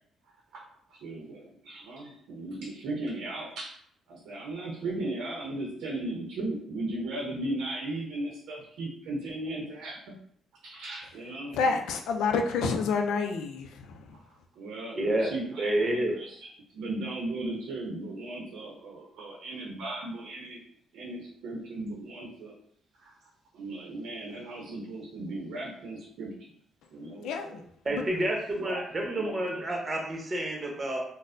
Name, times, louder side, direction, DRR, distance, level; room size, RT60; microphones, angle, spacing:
voice 1, 1.0-3.7 4.1-10.1 10.6-11.8 14.6-16.3 16.7-20.6 20.9-22.5 23.5-26.3 26.9-27.6 28.5-29.3 29.7-29.8, right 2 dB, 85° right, -3 dB, 0.6 m, -36 dB
voice 2, 11.5-14.0 27.2-27.6 27.9-28.0, left 4 dB, 85° left, 5 dB, 0.4 m, -28 dB
voice 3, 15.0-15.3 15.6-16.1 27.8-31.0, right 1 dB, 30° right, 0 dB, 0.9 m, -29 dB
4.1 x 2.1 x 2.5 m, 0.66 s
cardioid pair, 90°, 0 cm